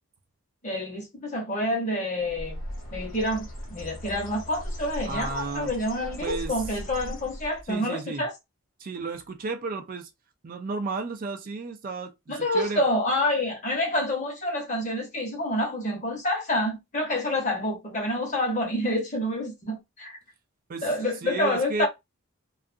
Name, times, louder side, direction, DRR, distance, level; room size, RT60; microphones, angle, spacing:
voice 1, 0.6-2.6 2.9-8.3 12.3-20.2 20.8-21.9, left 1 dB, 35° left, 1.0 m, -28 dB
Bird, 2.2-7.7, equal, 60° left, 1.0 m, -38 dB
voice 2, 5.1-5.7 6.2-6.6 7.7-8.3 8.8-10.1 10.4-12.8 20.7-20.9 21.2-21.9, right 4 dB, 40° right, 0.3 m, -33 dB
2.5 x 2.4 x 2.5 m
head